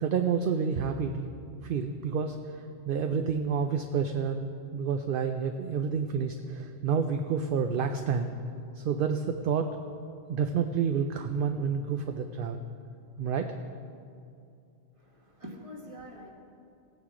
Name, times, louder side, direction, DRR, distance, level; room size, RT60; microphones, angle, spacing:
voice 1, 0.0-1.3 1.6-8.3 8.8-9.7 10.3-12.6 13.2-13.5, right 6 dB, 60° right, 6 dB, 0.6 m, -29 dB
voice 2, 15.0-16.3, equal, 30° right, -1 dB, 1.5 m, -45 dB
17.0 x 9.4 x 3.7 m, 2.5 s
omnidirectional pair, 1.2 m